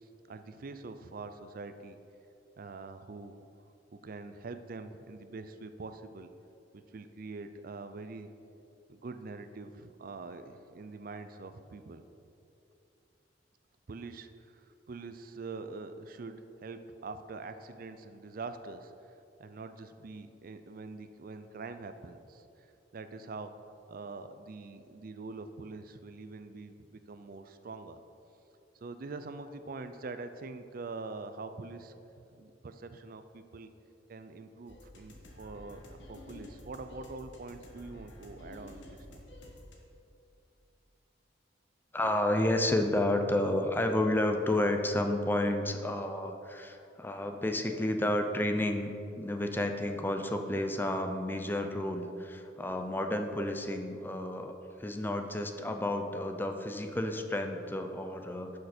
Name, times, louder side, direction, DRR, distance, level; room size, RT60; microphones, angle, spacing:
voice 1, 0.3-2.0 2.6-3.4 3.9-6.3 6.7-8.3 8.9-12.0 13.9-19.1 19.4-22.7 22.9-23.5 23.9-28.0 28.8-31.9 32.3-33.7 34.1-39.2, right 3 dB, 50° right, 10 dB, 0.4 m, -44 dB
sound 1, 34.7-39.8, left 1 dB, 75° left, 1.5 m, -50 dB
voice 2, 41.9-58.6, left 1 dB, 10° left, 5 dB, 0.5 m, -31 dB
11.5 x 6.5 x 4.3 m, 2.7 s
head